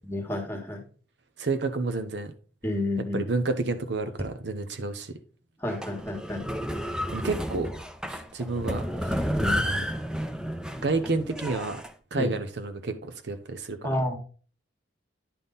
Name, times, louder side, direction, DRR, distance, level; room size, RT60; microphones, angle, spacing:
voice 1, 0.0-0.8 2.6-3.2 5.6-6.4 9.3-9.6 12.1-12.3 13.8-14.2, left 1 dB, 15° left, 1.5 m, -30 dB
voice 2, 1.4-2.3 3.1-5.1 7.1-7.7 8.1-9.2 9.5-9.8 10.8-11.8 12.1-14.0, right 3 dB, 65° right, 0.7 m, -30 dB
sound 1, 5.7-11.9, equal, 5° right, 0.5 m, -31 dB
10.0 x 3.7 x 4.0 m
head